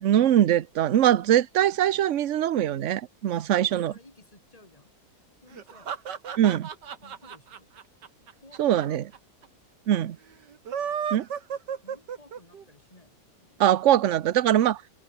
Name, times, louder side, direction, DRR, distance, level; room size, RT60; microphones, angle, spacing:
voice 1, 0.0-3.9 6.4-6.7 8.6-9.0 9.9-10.2 11.1-11.3 13.6-14.8, right 11 dB, 55° right, 1.0 m, -22 dB
voice 2, 3.2-4.9 5.4-6.0 7.0-7.7 8.2-9.0 11.8-13.7, left 2 dB, 20° left, 4.6 m, -55 dB
sound 1, 5.5-8.8 9.1-9.2 9.4-9.5 10.5-12.6, right 7 dB, 85° right, 2.2 m, -33 dB
omnidirectional pair, 1.8 m